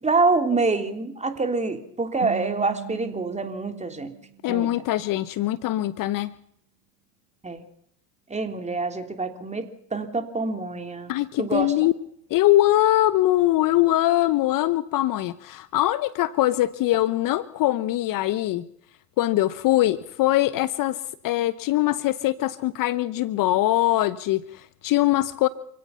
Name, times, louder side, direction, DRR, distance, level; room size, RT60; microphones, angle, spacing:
voice 1, 0.0-4.1 4.5-4.7 7.4-7.6 8.3-11.1 11.4-11.9, right 3 dB, 15° right, 7 dB, 3.2 m, -26 dB
sound 1, 2.2-5.3, right 15 dB, 50° right, 1.7 m, -40 dB
voice 2, 4.4-6.3 11.1-11.9 12.3-18.6 19.2-25.5, left 15 dB, 40° left, 16 dB, 0.9 m, -22 dB
27.5 x 17.0 x 5.7 m, 0.68 s
hypercardioid pair, 90°, 49 cm